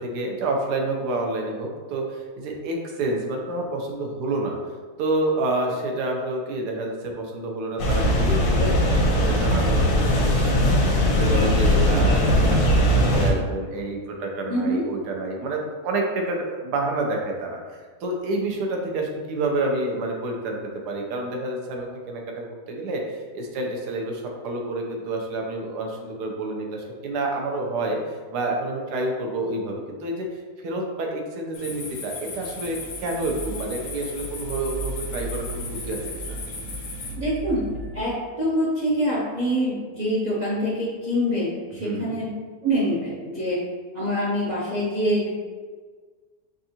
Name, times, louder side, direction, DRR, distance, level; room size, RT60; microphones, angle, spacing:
voice 1, 0.0-4.6 5.0-10.8 11.2-20.6 20.9-30.3 30.6-36.0 36.3-36.4 41.8-42.2, right 2 dB, 80° right, 1 dB, 1.2 m, -28 dB
sound 1, 7.8-13.3, equal, 75° left, 1.5 m, -19 dB
voice 2, 14.5-14.8 37.1-37.7 37.9-42.3 42.6-43.6 43.9-45.3, equal, 50° right, -7 dB, 0.5 m, -25 dB
sound 2, 31.5-37.1, left 4 dB, 60° left, 0.9 m, -37 dB
sound 3, 32.5-38.0, right 2 dB, 65° right, 0.9 m, -36 dB
5.3 x 2.4 x 2.8 m, 1.5 s
omnidirectional pair, 1.7 m